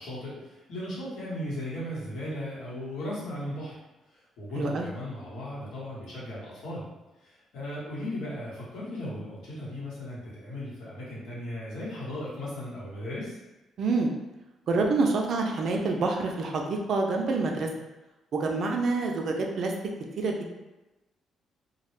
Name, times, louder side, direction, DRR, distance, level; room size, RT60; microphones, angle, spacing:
voice 1, 0.0-3.8 4.1-6.9 7.2-13.4, left 1 dB, 80° left, -8 dB, 1.1 m, -37 dB
voice 2, 4.6-4.9 13.8-14.1 14.7-17.7 18.3-19.7 20.2-20.5, right 3 dB, 60° right, 1 dB, 0.4 m, -27 dB
2.2 x 2.0 x 3.1 m, 1.0 s
cardioid pair, 90°, 0 cm